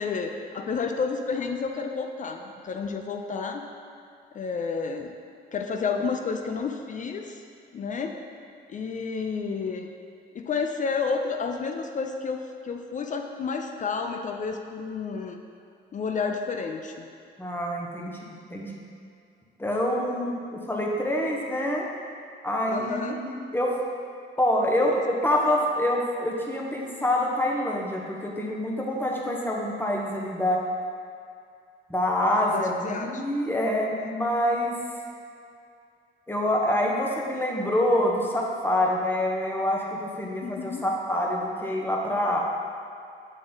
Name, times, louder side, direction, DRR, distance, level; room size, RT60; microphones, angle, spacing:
voice 1, 0.0-3.6 4.3-5.1 5.5-7.4 7.7-8.2 8.7-9.9 10.3-15.4 15.9-17.1 22.7-23.2 24.8-25.0 32.5-33.2 34.0-34.1 40.4-40.8, left 5 dB, 40° left, 4 dB, 0.4 m, -31 dB
voice 2, 17.4-18.1 18.5-18.7 19.6-21.8 22.4-23.7 24.4-30.6 31.9-34.7 36.3-42.4, left 1 dB, 10° left, -2 dB, 0.9 m, -26 dB
7.0 x 3.7 x 3.8 m, 2.4 s
cardioid pair, 90°, 20 cm